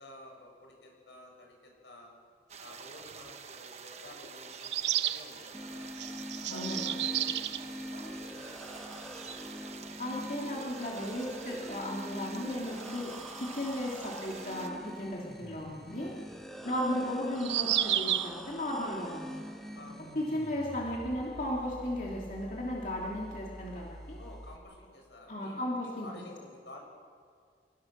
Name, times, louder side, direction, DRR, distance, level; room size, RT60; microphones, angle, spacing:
voice 1, 0.0-2.1 2.6-6.0 6.4-9.5 16.6-16.8 19.7-20.2 24.2-26.8, left 1 dB, 85° left, 0 dB, 7.9 m, -52 dB
sound 1, 2.5-14.7, right 6 dB, 40° right, 1.2 m, -47 dB
sound 2, 3.1-3.2 4.6-5.2 5.9-7.6 8.9-9.0 9.1-9.2 11.7-11.8 14.9-15.0 17.4-18.4, right 12 dB, 80° right, 0.8 m, -31 dB
sound 3, 5.5-24.6, equal, ahead, 1.8 m, -44 dB
voice 2, 6.5-6.8 10.0-13.1 13.4-16.1 16.6-19.4 20.1-24.2 25.3-26.1, left 1 dB, 45° left, -3 dB, 2.9 m, -35 dB
28.0 x 19.0 x 6.7 m, 2.1 s
head